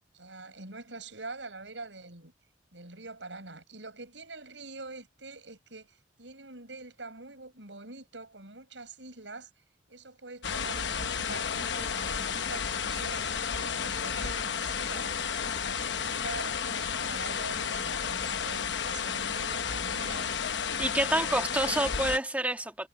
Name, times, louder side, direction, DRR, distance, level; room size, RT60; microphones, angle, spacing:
voice 1, 0.1-2.3 2.7-9.5 9.9-15.2 15.6-20.4 20.7-21.6, right 3 dB, 90° right, 7.3 m, -45 dB
sound 1, 10.4-22.2, left 6 dB, 80° left, 1.0 m, -32 dB
voice 2, 20.8-22.9, right 1 dB, 10° right, 2.0 m, -28 dB
head